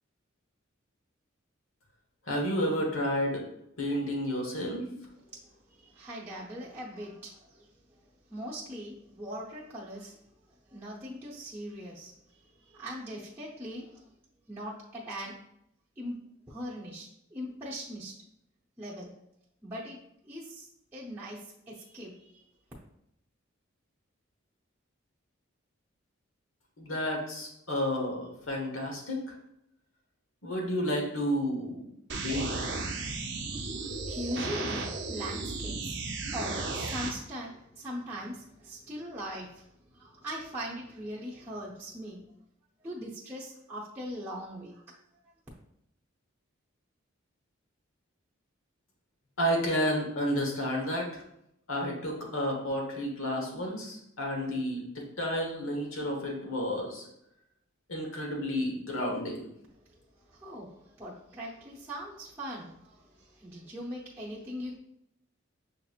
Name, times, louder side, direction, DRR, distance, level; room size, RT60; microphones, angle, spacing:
voice 1, 2.3-3.4 3.8-4.9 26.8-29.3 30.4-31.9 32.2-32.8 49.4-51.2 51.7-57.0 57.9-59.5, equal, 80° left, 0 dB, 1.2 m, -31 dB
voice 2, 5.2-10.2 10.5-14.0 14.5-15.4 16.0-16.2 16.5-18.1 18.8-19.1 19.6-20.0 20.2-22.4 32.7-36.0 36.3-42.2 42.8-44.8 45.2-45.3 59.8-64.8, equal, 10° right, -8 dB, 0.7 m, -41 dB
sound 1, 32.1-37.1, right 3 dB, 55° right, 0.6 m, -34 dB
6.4 x 2.9 x 2.4 m, 0.77 s
head